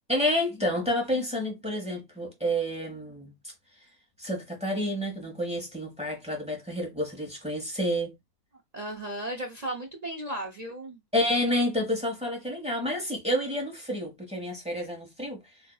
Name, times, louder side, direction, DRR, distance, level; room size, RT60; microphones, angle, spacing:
voice 1, 0.1-3.3 4.2-8.1 11.1-15.4, equal, 5° right, 0.9 m, -29 dB
voice 2, 8.7-11.0, right 1 dB, 60° right, 0.4 m, -35 dB
4.4 x 2.6 x 2.3 m
omnidirectional pair, 1.6 m